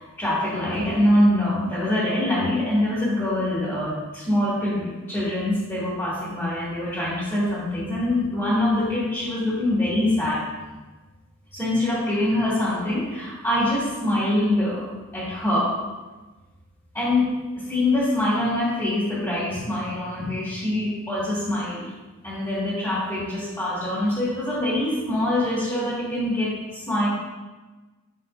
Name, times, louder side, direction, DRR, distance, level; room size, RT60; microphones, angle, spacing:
voice 1, 0.0-10.5 11.5-15.8 16.9-21.9 22.2-27.1, left 1 dB, 15° left, -8 dB, 1.8 m, -24 dB
7.8 x 5.5 x 2.5 m, 1.2 s
head